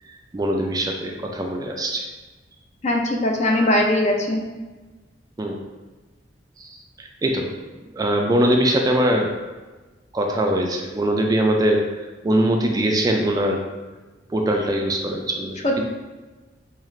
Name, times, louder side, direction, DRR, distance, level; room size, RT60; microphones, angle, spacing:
voice 1, 0.3-2.0 5.4-5.6 6.6-7.5 7.9-9.3 10.1-11.8 12.2-13.6 14.3-15.8, right 1 dB, 20° right, 1 dB, 0.3 m, -22 dB
voice 2, 2.8-4.5 15.6-15.8, left 1 dB, 40° left, 1 dB, 0.5 m, -20 dB
4.8 x 2.4 x 3.1 m, 1.2 s
head